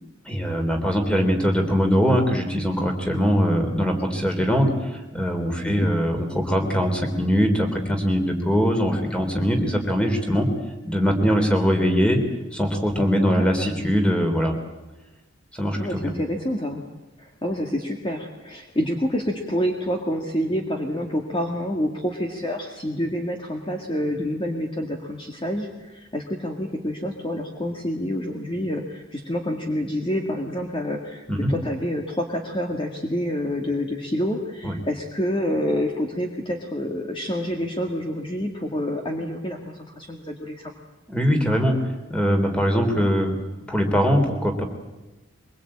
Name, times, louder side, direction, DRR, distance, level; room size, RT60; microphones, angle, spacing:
voice 1, 0.3-10.5 10.8-12.2 12.5-14.6 15.5-16.1 31.3-31.5 34.6-34.8 41.1-41.8 42.1-43.3 43.7-44.6, equal, 5° left, 4 dB, 3.6 m, -22 dB
voice 2, 13.3-13.7 15.8-16.8 17.2-40.7, equal, 25° left, 2 dB, 2.0 m, -28 dB
24.0 x 22.5 x 8.8 m, 1.1 s
head